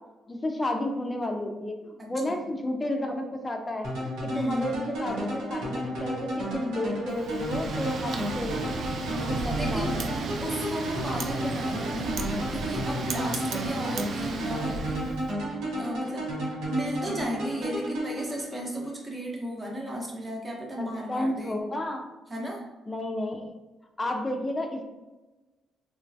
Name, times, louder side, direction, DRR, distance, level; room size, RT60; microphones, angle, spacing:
voice 1, 0.3-10.1 20.8-22.1 22.9-23.5 24.0-24.8, left 1 dB, 20° left, 4 dB, 0.4 m, -32 dB
voice 2, 2.0-2.5 4.3-4.7 9.1-10.0 10.4-15.2 15.7-16.3 16.7-21.6 22.3-22.6, right 1 dB, 25° right, -2 dB, 0.8 m, -34 dB
sound 1, 3.8-18.9, equal, 85° right, 0.8 m, -32 dB
Wind, 7.1-15.3, right 4 dB, 60° right, 0.3 m, -34 dB
3.0 x 2.2 x 2.6 m, 1.1 s
cardioid pair, 90°, 0 cm